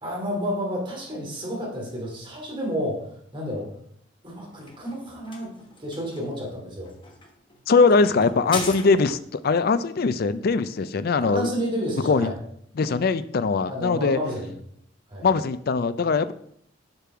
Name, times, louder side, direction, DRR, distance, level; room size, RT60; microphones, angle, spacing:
voice 1, 0.0-3.0 3.3-3.7 4.2-5.5 5.8-6.9 8.2-8.3 11.2-12.3 13.7-14.5 15.1-15.3, equal, 30° right, -2 dB, 2.6 m, -30 dB
sound 1, 4.3-9.4, left 3 dB, 25° left, 1.2 m, -39 dB
voice 2, 7.7-11.5 12.0-12.3 12.8-14.2 15.2-16.3, left 4 dB, 55° left, 13 dB, 0.4 m, -21 dB
6.7 x 6.0 x 4.8 m, 0.67 s
head